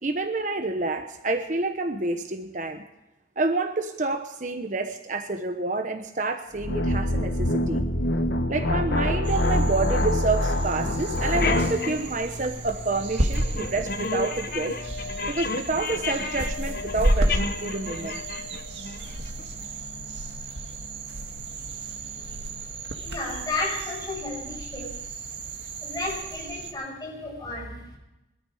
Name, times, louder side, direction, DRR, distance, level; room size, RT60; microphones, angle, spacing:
voice 1, 0.0-2.8 3.4-7.8 8.5-14.8 15.3-18.2, right 3 dB, 45° right, 7 dB, 1.0 m, -28 dB
sound 1, 6.6-11.8, left 1 dB, 85° left, 1.4 m, -25 dB
sound 2, 9.2-26.7, right 1 dB, 85° right, 1.8 m, -32 dB
sound 3, 11.0-19.7, left 4 dB, 55° left, 1.1 m, -33 dB
voice 2, 23.0-25.0 25.8-28.0, left 2 dB, 20° left, -2 dB, 6.9 m, -33 dB
21.5 x 13.0 x 5.0 m, 0.96 s
head